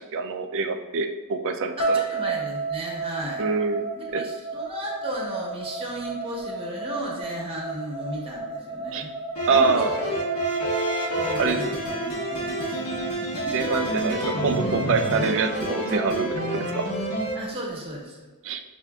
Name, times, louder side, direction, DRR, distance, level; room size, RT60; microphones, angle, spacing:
voice 1, 0.0-2.0 3.4-3.9 4.1-4.3 8.9-9.0 9.5-10.0 11.4-11.6 13.5-16.9 18.4-18.6, right 4 dB, 60° right, 7 dB, 0.4 m, -25 dB
sound 1, 1.8-13.9, right 3 dB, 70° left, 0.6 m, -33 dB
voice 2, 1.8-3.4 4.0-9.1 9.5-10.1 11.1-12.9 17.3-18.3, right 1 dB, 25° right, -3 dB, 0.9 m, -35 dB
sound 2, 9.4-17.4, right 1 dB, 85° left, 1.0 m, -28 dB
6.0 x 2.5 x 2.3 m, 1.3 s
head